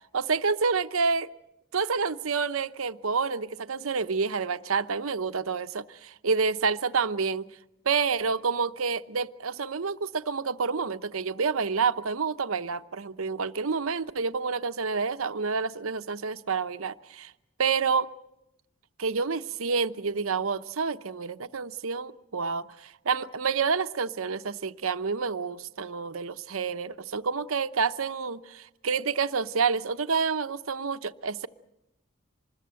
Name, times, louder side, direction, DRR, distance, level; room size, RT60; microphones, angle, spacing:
voice 1, 0.1-1.3 1.7-7.5 7.9-17.3 17.6-18.1 19.0-31.5, right 5 dB, 90° right, 11 dB, 0.8 m, -28 dB
25.5 x 21.0 x 7.7 m, 0.84 s
head